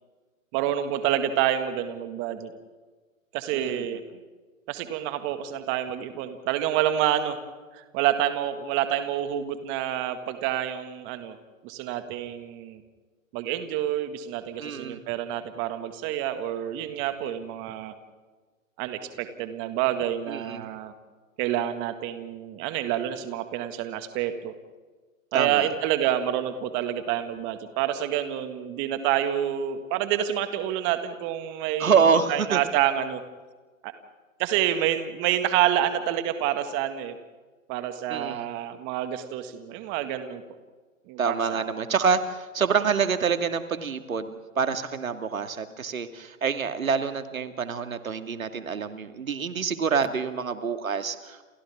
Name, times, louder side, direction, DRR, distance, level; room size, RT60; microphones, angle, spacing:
voice 1, 0.5-2.5 3.3-4.0 4.7-7.4 7.7-11.4 11.6-12.8 13.3-17.9 18.8-20.9 21.4-24.5 25.3-33.2 33.8-33.9 34.4-37.2 37.7-40.4 41.1-41.7, right 11 dB, 25° right, 9 dB, 1.9 m, -28 dB
voice 2, 3.5-3.8 14.6-15.0 20.3-20.7 25.3-25.7 31.8-32.6 38.1-38.5 41.2-51.4, right 6 dB, 75° right, 9 dB, 2.1 m, -26 dB
29.5 x 29.5 x 3.6 m, 1.3 s
hypercardioid pair, 130°, 42 cm